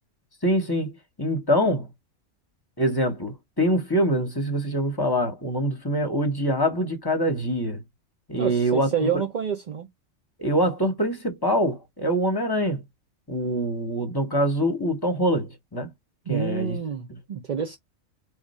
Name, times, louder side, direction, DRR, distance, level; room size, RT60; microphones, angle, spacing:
voice 1, 0.4-0.9 1.2-1.9 2.8-7.8 8.3-8.9 10.4-12.8 13.3-15.9 16.3-16.8 17.1-17.2, equal, 20° left, 1.0 m, -24 dB
voice 2, 8.4-9.9 16.3-17.8, right 7 dB, 45° right, 0.7 m, -28 dB
3.6 x 3.2 x 4.2 m
omnidirectional pair, 1.3 m